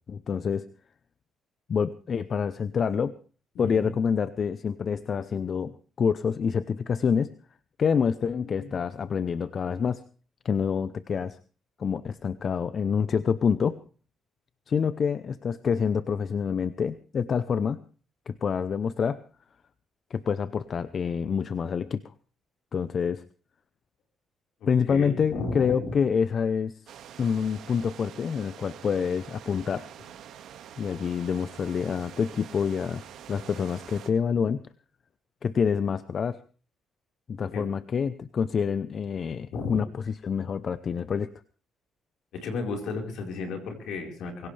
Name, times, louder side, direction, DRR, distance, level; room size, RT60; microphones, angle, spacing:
voice 1, 0.1-0.6 1.7-3.1 3.6-7.3 7.8-10.0 10.4-11.4 11.8-13.8 14.7-17.8 18.3-19.2 20.1-22.0 22.7-23.2 24.7-26.8 27.2-29.9 30.8-33.0 33.3-34.6 35.4-36.4 37.3-41.3, left 6 dB, 50° left, 14 dB, 0.8 m, -27 dB
voice 2, 3.5-3.9 8.4-8.7 24.6-25.9 37.5-37.6 39.5-39.8 42.3-44.5, left 4 dB, 75° left, 3 dB, 4.6 m, -34 dB
sound 1, 26.9-34.1, right 9 dB, 75° right, 1.9 m, -46 dB
23.5 x 16.5 x 3.4 m, 0.38 s
supercardioid pair, 75°, 0 cm